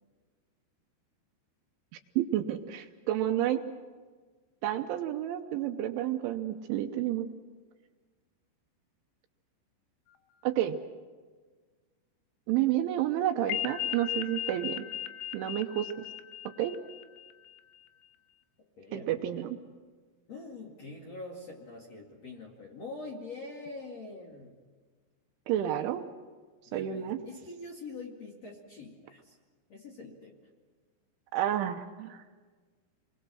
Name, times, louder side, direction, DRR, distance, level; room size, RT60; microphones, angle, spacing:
voice 1, 2.2-3.6 4.6-7.3 10.4-10.8 12.5-14.8 15.3-15.9 16.6-16.7 18.9-19.5 25.5-26.0 26.7-27.2 31.3-32.2, right 12 dB, 75° right, 6 dB, 3.0 m, -30 dB
sound 1, 13.5-17.6, left 12 dB, 85° left, 3.7 m, -37 dB
voice 2, 18.8-19.5 20.3-24.6 26.7-29.4 29.7-30.4, left 3 dB, 45° left, -2 dB, 2.4 m, -44 dB
29.5 x 22.5 x 6.3 m, 1.4 s
omnidirectional pair, 6.0 m